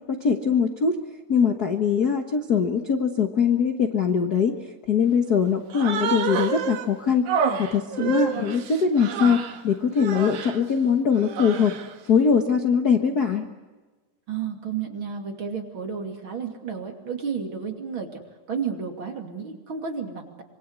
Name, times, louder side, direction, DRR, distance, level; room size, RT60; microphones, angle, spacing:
voice 1, 0.1-1.0 1.3-4.5 4.9-7.3 7.6-11.7 12.1-13.5, left 6 dB, 50° left, 6 dB, 1.2 m, -22 dB
Human voice, 5.7-6.9 7.3-9.6 10.0-10.6 11.2-11.9, right 7 dB, 75° right, 3.0 m, -28 dB
voice 2, 14.3-18.2 18.5-20.4, right 6 dB, 40° right, 3 dB, 3.3 m, -32 dB
26.0 x 24.0 x 8.2 m, 1.3 s
omnidirectional pair, 3.5 m